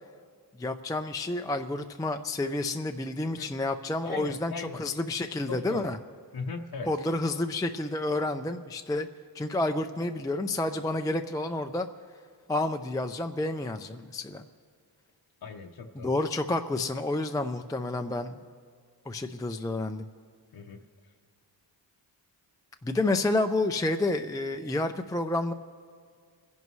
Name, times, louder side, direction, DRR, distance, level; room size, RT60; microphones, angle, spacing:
voice 1, 0.6-6.0 6.9-9.1 9.3-11.9 12.5-14.4 15.9-18.3 19.1-20.1 22.8-25.5, left 2 dB, 10° left, 6 dB, 0.4 m, -29 dB
voice 2, 4.0-4.8 5.5-5.9 6.3-6.9 15.4-16.1 20.5-20.8, left 4 dB, 55° left, 1 dB, 0.8 m, -38 dB
29.5 x 11.0 x 3.1 m, 2.1 s
wide cardioid pair, 105°, 45 cm